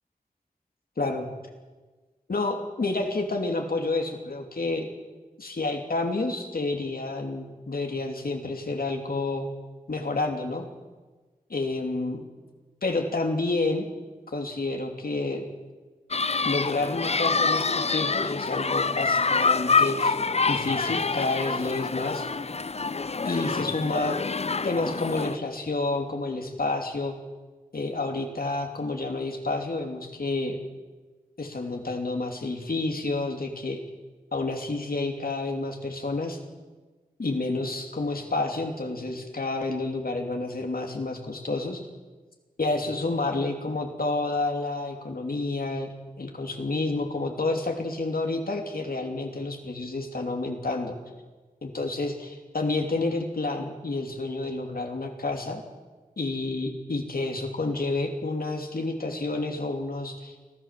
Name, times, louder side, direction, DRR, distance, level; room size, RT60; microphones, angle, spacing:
voice 1, 1.0-1.3 2.3-4.9 5.4-9.5 9.9-10.6 11.5-12.2 12.8-13.9 14.3-15.5 16.4-20.2 20.5-22.3 23.2-24.2 24.6-27.1 27.7-30.6 31.4-33.8 34.3-36.4 37.2-41.8 42.6-45.9 46.2-51.0 51.6-55.6 56.2-60.3, left 2 dB, 85° left, 3 dB, 3.0 m, -29 dB
sound 1, 16.1-25.4, left 4 dB, 45° left, 0.5 m, -26 dB
24.5 x 15.5 x 7.6 m, 1.3 s
wide cardioid pair, 75°, 15 cm